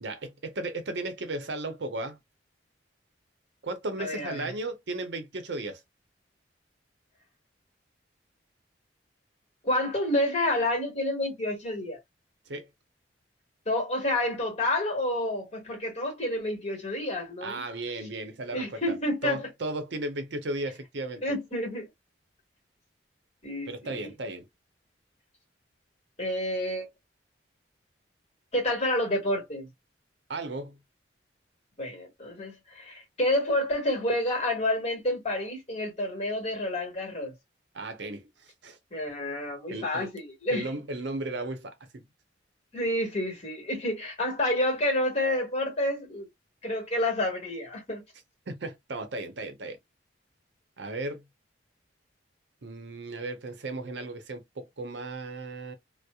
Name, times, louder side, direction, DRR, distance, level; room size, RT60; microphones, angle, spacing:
voice 1, 0.0-2.2 3.6-5.8 12.5-12.7 17.4-18.9 19.2-21.2 23.7-24.5 30.3-30.8 37.7-38.8 39.7-40.1 40.5-42.0 48.5-49.8 50.8-51.2 52.6-55.7, right 2 dB, 65° right, 0.7 m, -35 dB
voice 2, 4.0-4.4 9.6-12.0 13.6-17.6 18.5-19.5 21.2-21.9 23.4-24.1 26.2-26.9 28.5-29.7 31.8-37.3 38.9-40.7 42.7-46.3 46.6-48.0, left 1 dB, 35° left, 1.3 m, -29 dB
2.8 x 2.0 x 2.3 m
head